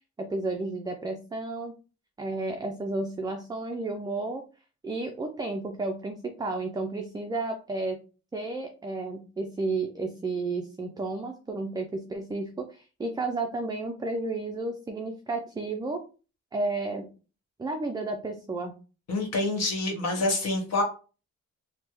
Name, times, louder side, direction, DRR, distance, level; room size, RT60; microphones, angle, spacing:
voice 1, 0.2-1.7 2.2-4.4 4.8-8.0 8.3-16.0 16.5-17.1 17.6-18.7, right 3 dB, 15° right, 4 dB, 0.4 m, -32 dB
voice 2, 19.1-20.8, left 2 dB, 60° left, 2 dB, 1.4 m, -27 dB
3.3 x 2.2 x 3.0 m, 0.35 s
cardioid pair, 90°, 30 cm